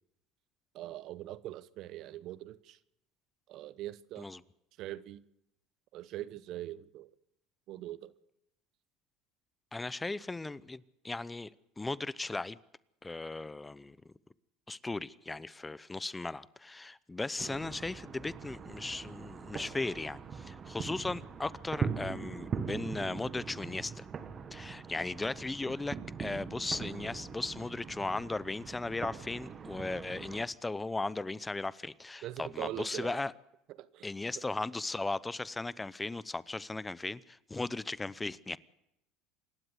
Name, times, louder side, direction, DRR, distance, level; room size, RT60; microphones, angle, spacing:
voice 1, 0.7-2.8 3.5-4.3 4.8-5.2 5.9-7.1 7.7-8.1 32.2-33.2 33.7-34.4, right 14 dB, 60° right, 1.0 m, -42 dB
voice 2, 9.7-11.5 11.8-12.6 13.0-14.0 14.7-24.1 24.5-33.3 34.0-38.6, left 3 dB, 15° left, 0.8 m, -37 dB
sound 1, 17.4-30.4, right 6 dB, 35° right, 1.7 m, -41 dB
27.0 x 12.0 x 8.1 m
supercardioid pair, 90°, 0 cm